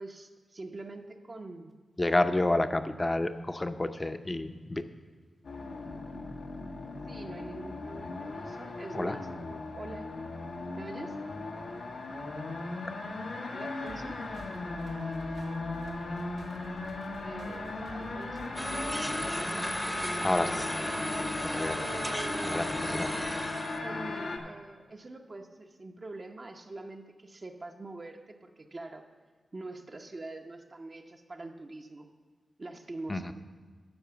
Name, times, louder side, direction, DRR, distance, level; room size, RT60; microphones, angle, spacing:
voice 1, 0.0-1.8 2.1-2.3 7.1-10.1 10.8-11.2 13.5-14.2 17.2-18.6 21.1-23.1 23.8-29.1 29.5-32.1 32.6-33.3, right 2 dB, 45° right, 3 dB, 0.8 m, -44 dB
voice 2, 2.0-4.8 8.9-9.2 20.1-20.7 21.5-21.8 22.4-23.1 33.1-33.3, left 2 dB, 25° left, 9 dB, 0.6 m, -29 dB
sound 1, 5.4-24.4, left 3 dB, 90° left, 1.2 m, -37 dB
sound 2, 13.9-19.2, right 2 dB, 85° right, 1.1 m, -50 dB
sound 3, 18.6-23.8, equal, 5° right, 0.8 m, -35 dB
12.5 x 4.9 x 6.9 m, 1.4 s
cardioid pair, 50°, 0 cm